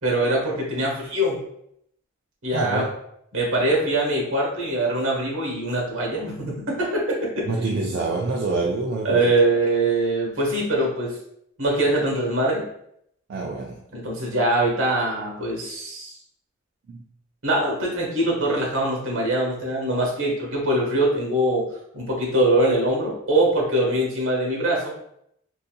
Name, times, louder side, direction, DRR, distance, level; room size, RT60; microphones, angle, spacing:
voice 1, 0.0-1.4 2.4-2.8 3.3-7.0 7.3-7.4 9.0-11.1 11.6-12.6 13.9-16.1 17.4-21.6 21.9-24.9, right 1 dB, 75° right, -2 dB, 1.2 m, -23 dB
voice 2, 2.5-2.9 7.5-9.3 13.3-13.8 16.9-17.0, right 3 dB, 50° right, -1 dB, 0.3 m, -26 dB
3.9 x 2.6 x 2.2 m, 0.73 s
head